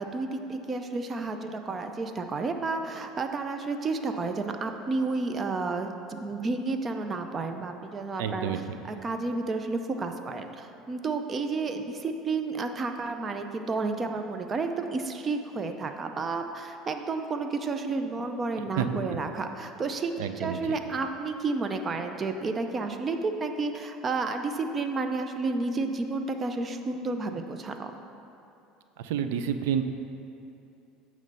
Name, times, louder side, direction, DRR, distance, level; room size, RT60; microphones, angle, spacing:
voice 1, 0.0-8.5 8.9-27.9, right 3 dB, 30° right, 6 dB, 0.5 m, -31 dB
voice 2, 8.2-8.6 18.8-18.9 20.2-20.8 29.0-29.8, right 9 dB, 90° right, 9 dB, 0.4 m, -29 dB
9.2 x 3.2 x 6.6 m, 2.8 s
supercardioid pair, 120°, 0 cm